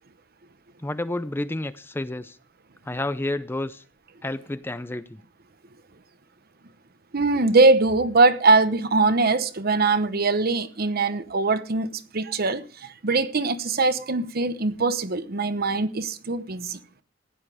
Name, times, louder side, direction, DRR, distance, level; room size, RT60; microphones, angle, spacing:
voice 1, 0.8-2.4 2.9-3.8 4.2-5.2, left 1 dB, 10° left, 0.5 m, -30 dB
voice 2, 7.1-16.8, right 3 dB, 50° right, 1.0 m, -22 dB
15.5 x 9.8 x 4.9 m
head